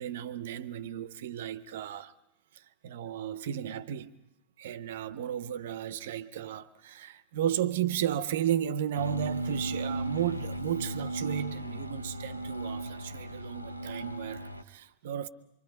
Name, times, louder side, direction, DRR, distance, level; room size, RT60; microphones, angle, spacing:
voice 1, 0.0-2.1 2.5-4.1 4.6-15.3, right 10 dB, 55° right, 0.7 m, -34 dB
sound 1, 8.9-14.6, right 1 dB, 90° left, 0.8 m, -36 dB
25.5 x 24.5 x 5.3 m
figure-of-eight pair, 90°, 0 cm